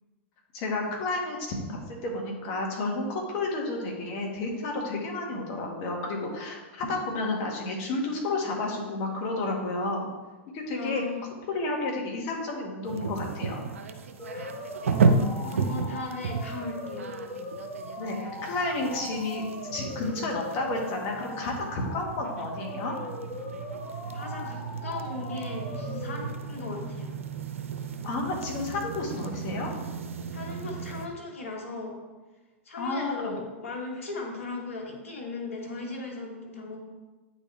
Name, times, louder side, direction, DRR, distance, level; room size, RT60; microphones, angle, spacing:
voice 1, 0.5-10.1 10.5-11.0 11.5-13.7 18.0-19.4 19.7-23.0 28.0-29.7 32.8-33.3, left 2 dB, 50° left, 0 dB, 1.7 m, -31 dB
voice 2, 10.7-11.3 14.3-14.6 15.4-17.1 24.1-27.1 30.3-31.9 32.6-36.8, left 3 dB, 85° left, -1 dB, 1.5 m, -37 dB
sound 1, 12.8-31.1, right 4 dB, 85° right, 0.6 m, -33 dB
sound 2, 14.2-26.2, left 1 dB, 30° left, 1.2 m, -40 dB
8.6 x 4.1 x 3.4 m, 1.2 s
hypercardioid pair, 110°, 7 cm